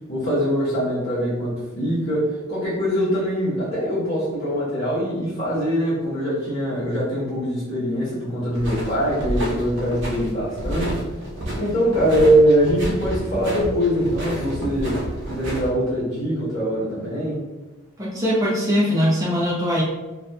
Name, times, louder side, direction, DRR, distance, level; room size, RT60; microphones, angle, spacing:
voice 1, 0.1-11.0 11.6-17.4, equal, 65° left, -12 dB, 1.0 m, -22 dB
sound 1, 8.5-15.7, right 1 dB, 60° right, 0.8 m, -30 dB
voice 2, 18.0-19.8, equal, 15° right, -6 dB, 0.6 m, -21 dB
2.7 x 2.5 x 2.3 m, 1.2 s
head